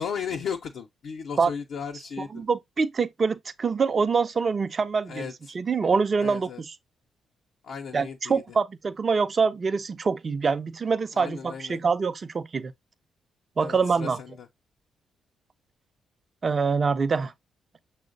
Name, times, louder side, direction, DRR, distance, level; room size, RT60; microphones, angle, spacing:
voice 1, 0.0-2.4 5.1-5.3 6.2-6.6 7.6-8.4 11.2-11.9 13.6-14.5, left 7 dB, 70° left, 0.6 m, -35 dB
voice 2, 2.2-5.2 5.5-6.7 7.9-12.7 13.6-14.2 16.4-17.3, right 5 dB, 45° right, 0.5 m, -25 dB
6.1 x 2.1 x 3.9 m
supercardioid pair, 55°, 0 cm